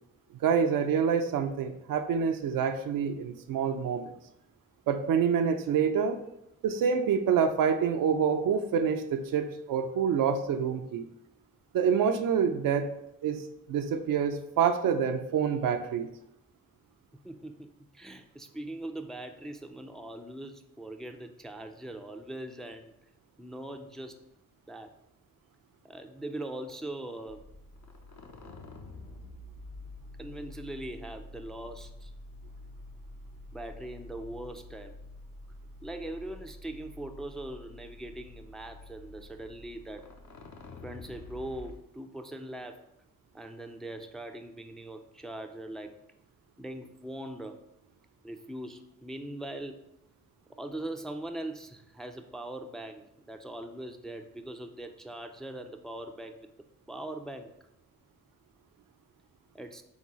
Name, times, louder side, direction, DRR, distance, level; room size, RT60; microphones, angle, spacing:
voice 1, 0.4-4.1 4.9-6.2 6.6-11.1 11.7-12.9 13.2-16.1, right 7 dB, 70° right, 7 dB, 0.5 m, -27 dB
voice 2, 17.1-22.9 23.4-24.3 24.7-24.9 25.8-27.4 30.2-32.1 33.5-35.0 35.8-40.1 40.8-42.8 43.3-45.9 46.6-47.6 48.2-49.8 50.5-56.5 56.9-57.5 59.5-59.8, right 1 dB, ahead, 5 dB, 0.4 m, -41 dB
sound 1, 27.3-41.7, left 2 dB, 55° left, 0.7 m, -48 dB
3.8 x 3.6 x 3.0 m, 0.80 s
supercardioid pair, 40°, 35 cm